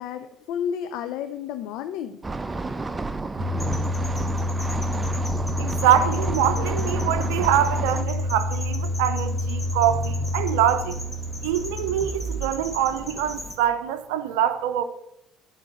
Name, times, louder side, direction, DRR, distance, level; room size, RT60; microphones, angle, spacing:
voice 1, 0.0-2.2, left 8 dB, 70° left, 0.5 m, -31 dB
sound 1, 2.2-8.0, right 3 dB, 20° right, 0.5 m, -31 dB
sound 2, 3.4-12.6, left 1 dB, 40° right, 1.1 m, -28 dB
sound 3, 3.6-13.5, left 1 dB, 10° left, 2.2 m, -38 dB
voice 2, 5.6-11.0 11.4-14.8, right 10 dB, 75° right, 0.5 m, -24 dB
8.8 x 4.5 x 6.4 m
hypercardioid pair, 55°, 0 cm